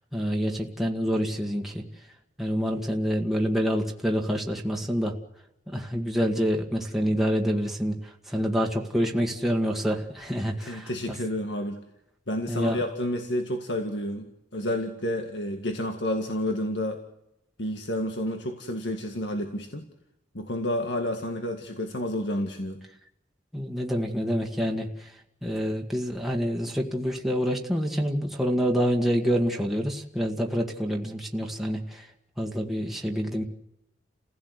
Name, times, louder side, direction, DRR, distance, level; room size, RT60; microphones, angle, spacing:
voice 1, 0.1-1.8 2.4-5.1 5.7-7.9 8.3-10.9 12.5-12.8 23.5-24.9 25.4-32.1 32.4-33.4, equal, ahead, 0 dB, 1.8 m, -27 dB
voice 2, 10.6-11.8 12.3-17.0 17.6-19.9 20.3-22.8, left 1 dB, 70° left, 4 dB, 2.0 m, -30 dB
30.0 x 16.0 x 8.2 m, 0.88 s
head